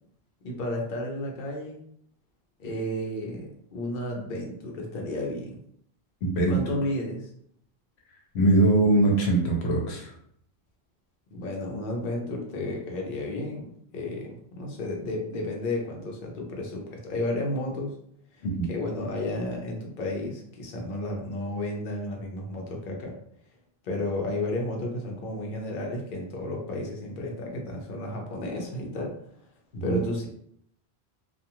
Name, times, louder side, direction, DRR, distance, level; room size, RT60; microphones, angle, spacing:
voice 1, 0.4-1.8 2.6-5.6 6.5-7.3 11.3-18.0 18.3-23.2 23.8-29.1 29.8-30.3, left 1 dB, 55° left, 0 dB, 0.8 m, -32 dB
voice 2, 6.2-6.8 8.3-10.1 18.4-18.7 29.7-30.0, right 2 dB, 75° left, 0 dB, 0.9 m, -22 dB
2.4 x 2.3 x 2.9 m, 0.68 s
omnidirectional pair, 1.1 m